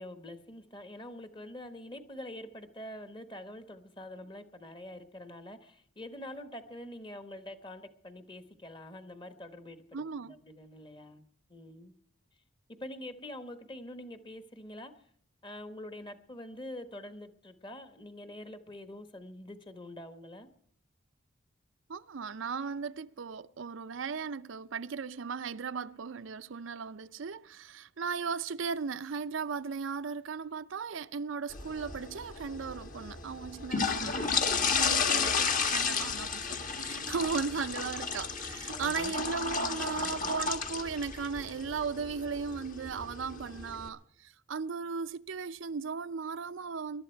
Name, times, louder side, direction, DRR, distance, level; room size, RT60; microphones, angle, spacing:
voice 1, 0.0-11.2 11.5-11.9 12.8-14.9 15.4-20.5 37.5-37.6 38.7-39.2, left 1 dB, 25° left, 1.2 m, -45 dB
voice 2, 9.9-10.4 21.9-47.0, right 5 dB, 75° right, 0.5 m, -37 dB
sound 1, 31.5-43.9, left 5 dB, 40° left, 1.5 m, -33 dB
21.5 x 12.0 x 4.5 m
head